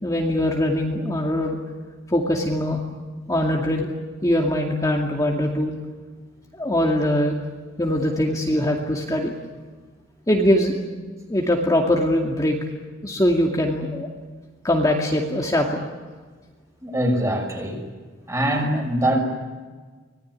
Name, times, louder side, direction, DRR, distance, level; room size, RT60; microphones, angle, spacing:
voice 1, 0.0-1.6 2.1-2.8 3.3-3.9 4.2-5.7 6.6-7.4 7.8-9.3 10.3-10.7 11.3-12.6 13.0-14.1 14.6-15.8, left 1 dB, 20° left, 0 dB, 2.4 m, -22 dB
voice 2, 16.8-17.8 18.3-19.2, right 1 dB, 15° right, 3 dB, 6.1 m, -23 dB
25.5 x 20.0 x 9.9 m, 1.4 s
head